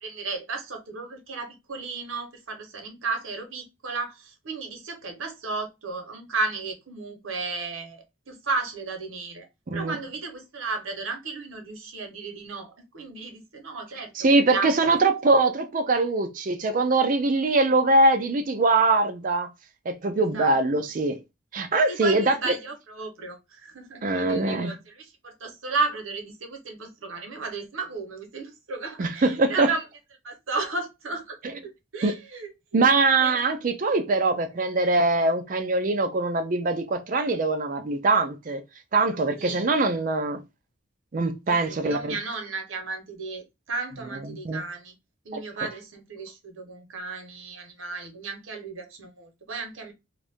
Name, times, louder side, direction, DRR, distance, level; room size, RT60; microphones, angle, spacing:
voice 1, 0.0-14.1 14.5-14.7 20.2-20.6 21.9-29.8 30.2-31.4 31.6-32.8 33.2-33.4 39.4-39.7 41.5-44.9 45.2-49.9, right 3 dB, 80° right, 0.9 m, -34 dB
voice 2, 14.2-19.5 19.9-21.2 21.5-22.5 24.0-24.7 29.0-29.7 32.0-32.2 32.7-38.6 38.9-40.4 41.1-42.2 44.4-44.6 45.3-45.4, right 3 dB, 40° right, 0.4 m, -22 dB
2.6 x 2.4 x 3.4 m
head